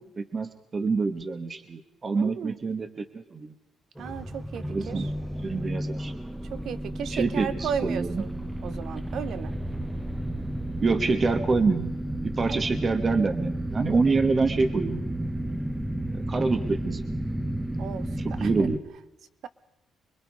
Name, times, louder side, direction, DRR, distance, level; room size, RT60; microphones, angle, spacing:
voice 1, 0.0-3.5 4.7-5.1 5.4-6.1 7.1-8.2 10.8-11.9 12.2-15.0 16.1-17.1 18.2-18.8, right 4 dB, 35° right, 7 dB, 1.3 m, -26 dB
voice 2, 2.1-2.6 4.0-5.0 6.5-8.3 8.6-9.5 12.5-12.6 17.8-18.1 18.4-18.7, right 7 dB, 70° right, 13 dB, 1.0 m, -34 dB
sound 1, 4.0-18.8, right 1 dB, 5° right, 1.0 m, -32 dB
25.5 x 21.5 x 4.9 m, 0.94 s
cardioid pair, 90°, 0 cm